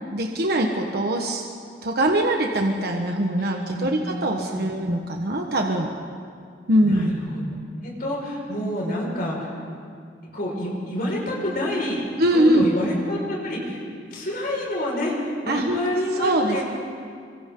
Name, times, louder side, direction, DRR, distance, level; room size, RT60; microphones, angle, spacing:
voice 1, 0.1-1.4 1.8-5.9 6.7-7.2 12.2-12.6 15.5-15.8 16.2-16.6, right 1 dB, 60° right, 2 dB, 1.4 m, -22 dB
voice 2, 3.4-3.9 4.5-4.7 6.8-7.4 7.8-9.5 10.3-12.0 12.3-13.8 14.1-16.6, left 1 dB, 55° left, -3 dB, 5.5 m, -28 dB
28.0 x 24.5 x 3.9 m, 2.2 s
head